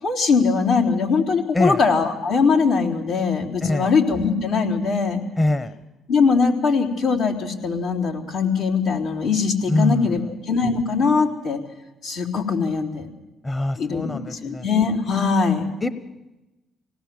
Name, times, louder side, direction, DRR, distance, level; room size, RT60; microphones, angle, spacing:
voice 1, 0.0-5.2 6.1-10.2 10.5-11.6 12.0-13.1 13.8-15.7, left 5 dB, 80° left, -4 dB, 3.7 m, -21 dB
voice 2, 5.4-5.7 9.7-10.1 13.4-14.6 15.8-15.9, left 1 dB, 25° left, 12 dB, 1.1 m, -23 dB
25.0 x 18.5 x 7.8 m, 1.1 s
supercardioid pair, 55°, 0 cm